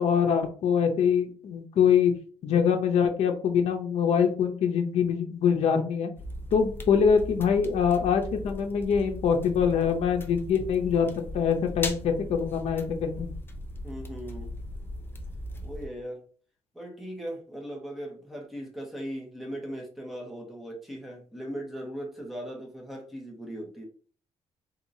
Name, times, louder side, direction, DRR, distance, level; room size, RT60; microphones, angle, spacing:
voice 1, 0.0-2.1 2.4-6.1 6.5-11.1 11.3-13.3, left 7 dB, 65° left, 5 dB, 0.6 m, -24 dB
sound 1, 6.2-15.9, left 1 dB, 20° left, 0.6 m, -38 dB
voice 2, 13.8-14.5 15.6-16.2 16.7-23.9, equal, ahead, 0 dB, 1.2 m, -38 dB
3.9 x 2.8 x 2.7 m, 0.42 s
cardioid pair, 115°, 11 cm